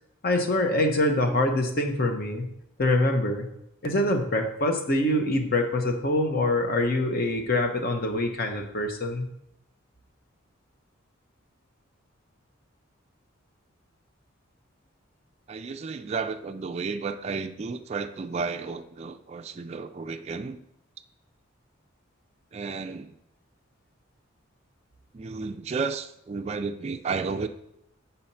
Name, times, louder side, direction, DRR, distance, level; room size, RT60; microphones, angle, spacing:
voice 1, 0.2-2.4 2.8-3.4 3.8-9.2, left 1 dB, 45° left, 4 dB, 0.9 m, -25 dB
voice 2, 15.5-20.6 22.5-23.1 25.1-27.5, right 4 dB, 30° right, 7 dB, 0.3 m, -32 dB
5.6 x 4.3 x 5.5 m, 0.79 s
head